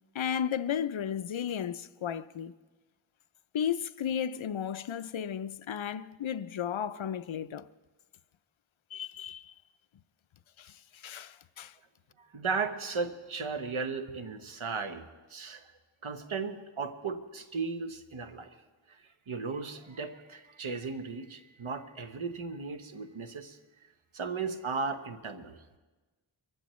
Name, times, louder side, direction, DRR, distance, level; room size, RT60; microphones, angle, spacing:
voice 1, 0.1-2.5 3.5-7.7 8.9-9.5 10.6-11.7, left 8 dB, 80° left, 0.6 m, -34 dB
voice 2, 12.3-15.7 16.0-18.5 18.9-19.0 19.3-23.6 24.1-25.8, right 4 dB, 90° right, 1.0 m, -36 dB
23.5 x 15.5 x 3.1 m
wide cardioid pair, 50°, 47 cm